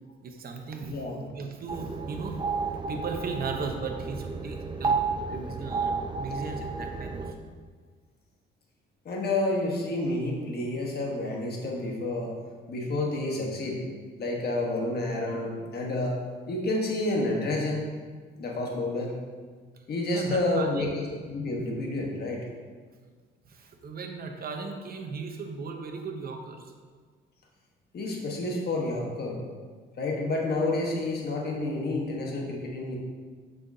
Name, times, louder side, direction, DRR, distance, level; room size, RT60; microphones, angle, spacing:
voice 1, 0.2-2.4 2.9-5.0 5.3-7.5 20.1-21.0 23.5-26.7, right 4 dB, 50° right, 4 dB, 0.9 m, -37 dB
voice 2, 0.9-1.2 9.0-12.3 12.7-13.8 14.2-16.1 16.5-17.8 18.4-19.1 19.9-22.4 27.9-29.4 30.0-33.0, left 2 dB, 55° left, -1 dB, 1.4 m, -29 dB
sound 1, 1.7-7.3, right 4 dB, 25° right, 0.5 m, -32 dB
6.5 x 5.5 x 2.8 m, 1.5 s
cardioid pair, 90°, 20 cm